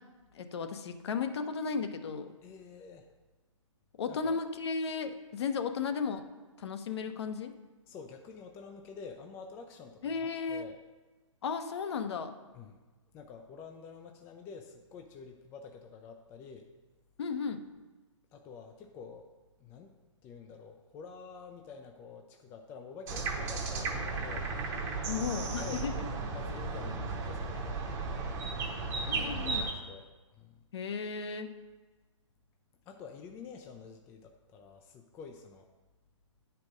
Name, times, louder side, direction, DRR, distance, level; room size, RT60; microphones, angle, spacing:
voice 1, 0.3-2.3 4.0-6.2 6.6-7.5 10.0-10.6 11.4-12.3 17.2-17.6 25.1-25.9 29.1-29.6 30.7-31.5, left 5 dB, 55° left, 7 dB, 0.9 m, -34 dB
voice 2, 2.4-3.1 4.1-4.4 7.9-10.8 12.5-12.8 13.1-16.7 18.3-19.3 19.6-19.9 20.2-24.5 25.2-27.9 29.1-30.1 30.3-30.6 32.9-35.7, left 5 dB, 15° left, 4 dB, 0.4 m, -48 dB
sound 1, 23.1-29.7, right 3 dB, 20° right, 1.0 m, -35 dB
9.3 x 4.7 x 5.0 m, 1.3 s
hypercardioid pair, 140°, 16 cm